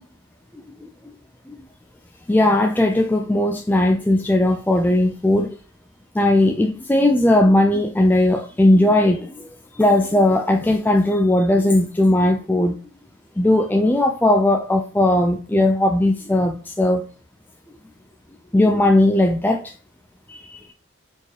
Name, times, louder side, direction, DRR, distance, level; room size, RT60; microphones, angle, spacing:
voice 1, 2.3-5.6 6.1-9.5 9.7-12.8 13.4-17.1 18.5-19.7 20.3-20.6, left 1 dB, 10° left, 0.3 m, -18 dB
4.4 x 3.2 x 2.8 m
head